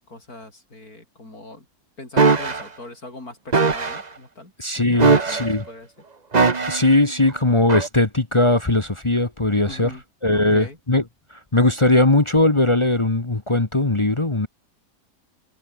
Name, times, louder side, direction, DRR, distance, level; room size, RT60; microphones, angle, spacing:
voice 1, 0.0-1.7 2.0-5.9 9.7-10.0 10.3-10.8, left 2 dB, 85° left, 7.2 m, -41 dB
sound 1, 2.2-2.6 3.5-4.0 5.0-5.6 6.3-6.9 7.7-7.9, right 4 dB, 30° right, 1.3 m, -19 dB
voice 2, 4.6-5.6 6.7-9.9 10.2-11.0 11.5-14.5, left 2 dB, 20° left, 1.3 m, -19 dB
omnidirectional pair, 1.5 m